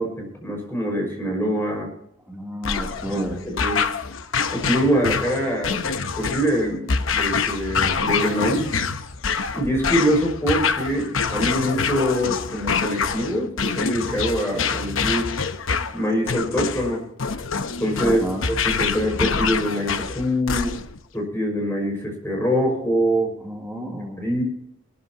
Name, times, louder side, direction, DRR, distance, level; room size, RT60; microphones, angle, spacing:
voice 1, 0.0-1.9 3.1-3.9 4.5-5.9 6.2-8.7 9.5-15.3 15.9-17.0 17.8-20.8 21.1-23.3 24.2-24.4, equal, 10° left, 1 dB, 5.6 m, -24 dB
voice 2, 2.3-3.4 18.0-18.5 23.4-24.2, equal, 5° right, -5 dB, 3.0 m, -31 dB
sound 1, 2.6-21.0, left 5 dB, 75° left, 0.9 m, -26 dB
21.5 x 13.5 x 2.9 m, 0.79 s
head